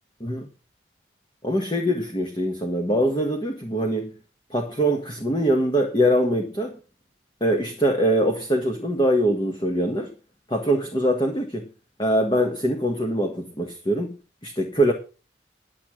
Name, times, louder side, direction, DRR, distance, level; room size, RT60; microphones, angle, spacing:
voice 1, 1.4-4.1 4.5-6.8 7.4-10.1 10.5-11.6 12.0-14.2 14.4-14.9, equal, 25° left, 1.5 m, -23 dB
10.5 x 8.4 x 6.2 m
head